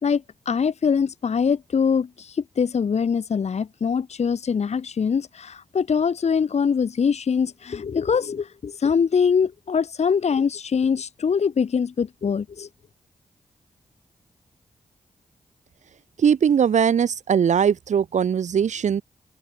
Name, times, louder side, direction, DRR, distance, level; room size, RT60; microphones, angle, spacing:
voice 1, 0.0-12.7, left 6 dB, 55° left, 1.0 m, -23 dB
voice 2, 16.2-19.0, right 7 dB, 65° right, 0.7 m, -20 dB
supercardioid pair, 45°, 13 cm